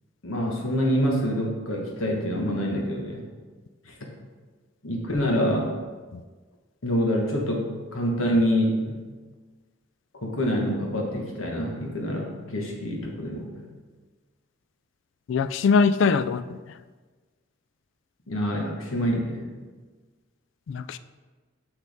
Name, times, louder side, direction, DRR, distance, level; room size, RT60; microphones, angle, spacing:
voice 1, 0.2-3.3 3.8-3.9 4.8-5.7 6.8-9.0 10.2-13.6 18.3-19.5, equal, 90° left, 0 dB, 1.4 m, -26 dB
voice 2, 15.3-16.6 20.7-21.0, left 5 dB, 65° left, 13 dB, 0.3 m, -22 dB
6.9 x 6.1 x 3.6 m, 1.4 s
head